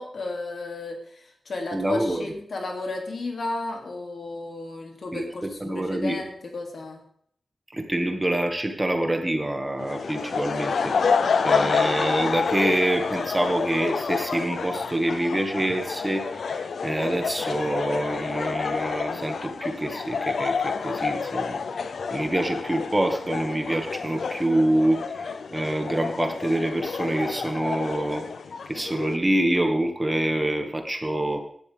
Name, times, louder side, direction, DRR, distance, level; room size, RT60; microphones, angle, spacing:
voice 1, 0.0-7.0, left 2 dB, 70° left, 2 dB, 2.8 m, -33 dB
voice 2, 1.7-2.3 5.1-6.2 7.7-21.6 22.1-28.2 28.7-31.4, right 1 dB, 20° right, 4 dB, 1.9 m, -26 dB
sound 1, 9.8-29.2, left 5 dB, 85° left, 0.7 m, -29 dB
16.0 x 12.0 x 3.5 m, 0.65 s
wide cardioid pair, 85°, 0 cm